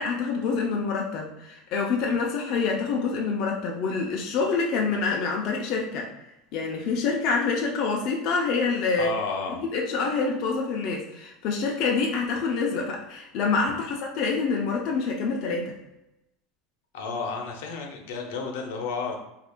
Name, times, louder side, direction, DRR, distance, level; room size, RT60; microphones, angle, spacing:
voice 1, 0.0-6.1 6.5-9.1 9.7-15.7, left 4 dB, 40° left, -1 dB, 0.4 m, -26 dB
voice 2, 9.0-9.6 16.9-19.2, left 4 dB, 80° left, 2 dB, 0.7 m, -31 dB
2.8 x 2.4 x 3.6 m, 0.91 s
supercardioid pair, 170°, 0 cm